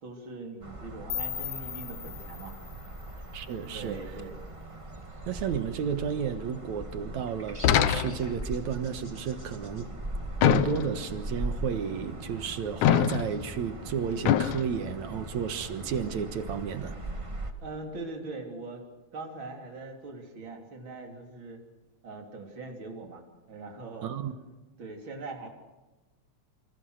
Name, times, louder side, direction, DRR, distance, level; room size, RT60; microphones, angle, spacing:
voice 1, 0.0-2.6 3.7-4.4 17.6-18.8 19.1-21.6 22.0-23.2 23.5-24.1 24.8-25.5, right 3 dB, 40° right, 3.9 m, -41 dB
sound 1, 0.6-17.5, right 1 dB, 15° right, 1.3 m, -40 dB
sound 2, 1.1-4.0, left 9 dB, 55° left, 1.2 m, -39 dB
voice 2, 3.3-4.0 5.3-9.9 10.4-17.0 24.0-24.3, right 7 dB, 70° right, 2.6 m, -32 dB
sound 3, 7.6-8.4 10.4-11.1 12.8-13.5 14.3-14.6, left 11 dB, 80° left, 2.4 m, -24 dB
27.5 x 25.5 x 6.5 m
omnidirectional pair, 3.5 m